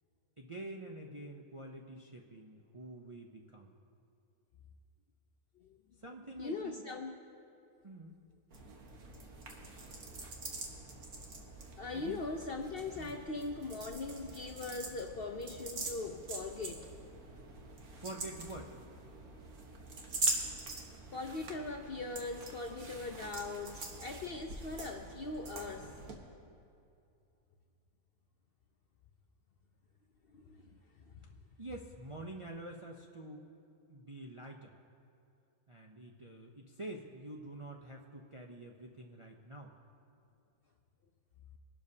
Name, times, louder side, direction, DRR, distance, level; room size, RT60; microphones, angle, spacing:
voice 1, 0.4-3.7 6.0-6.9 7.8-8.2 9.8-10.1 10.6-10.8 11.9-12.2 12.9-13.2 17.9-18.8 31.6-33.5 33.9-34.8 35.7-39.7, right 1 dB, 35° right, 0 dB, 0.5 m, -47 dB
voice 2, 6.4-7.1 9.5-9.6 11.8-16.9 21.1-25.9 30.3-30.7 31.1-31.2, left 3 dB, 55° left, 4 dB, 0.6 m, -40 dB
sound 1, 8.5-26.1, right 3 dB, 75° right, 1.8 m, -43 dB
22.5 x 12.0 x 2.8 m, 2.6 s
omnidirectional pair, 1.6 m